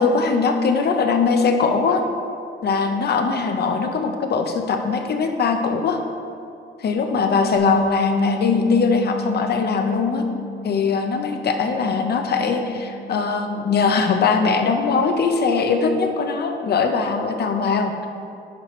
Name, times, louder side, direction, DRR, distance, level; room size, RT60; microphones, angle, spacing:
voice 1, 0.0-2.0 2.6-6.0 6.8-10.2 10.6-18.1, left 5 dB, 55° left, 5 dB, 0.8 m, -21 dB
Bass guitar, 7.6-13.8, left 1 dB, 20° left, 0.9 m, -30 dB
10.0 x 4.9 x 3.2 m, 2.5 s
cardioid pair, 90°, 20 cm